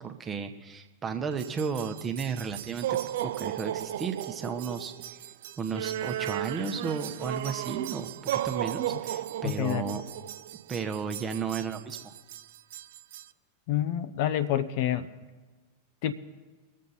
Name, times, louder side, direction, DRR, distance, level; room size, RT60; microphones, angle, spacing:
voice 1, 0.0-2.9 3.2-5.2 5.6-10.0 10.7-12.1, right 6 dB, 20° right, 6 dB, 1.0 m, -34 dB
sound 1, 1.4-13.3, right 12 dB, 55° right, 0.4 m, -35 dB
voice 2, 9.4-10.0 13.7-15.1 16.0-16.1, left 11 dB, 50° left, 11 dB, 0.7 m, -28 dB
21.5 x 7.5 x 4.1 m, 1.3 s
figure-of-eight pair, 90°, 0 cm